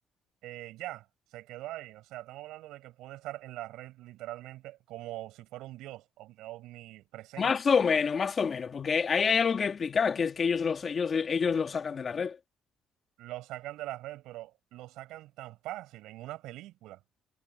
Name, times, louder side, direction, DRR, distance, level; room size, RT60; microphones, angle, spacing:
voice 1, 0.4-7.5 13.2-17.0, right 16 dB, 85° right, 6.8 m, -43 dB
voice 2, 7.4-12.4, left 6 dB, 35° left, 1.9 m, -27 dB
cardioid pair, 120°, 0 cm